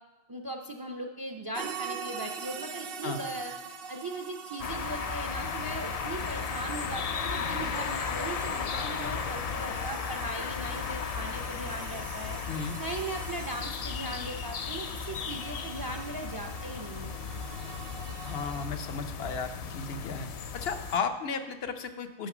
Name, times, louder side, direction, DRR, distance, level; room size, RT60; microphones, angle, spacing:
voice 1, 0.3-3.5 3.9-17.1, right 2 dB, 30° right, 3 dB, 0.5 m, -39 dB
sound 1, 1.5-18.7, right 6 dB, 65° right, 1.0 m, -44 dB
sound 2, 4.6-21.0, left 6 dB, 50° left, 0.4 m, -35 dB
voice 2, 18.2-20.3 20.5-22.3, left 5 dB, 75° left, 8 dB, 1.0 m, -34 dB
9.0 x 5.7 x 6.0 m, 1.1 s
omnidirectional pair, 1.0 m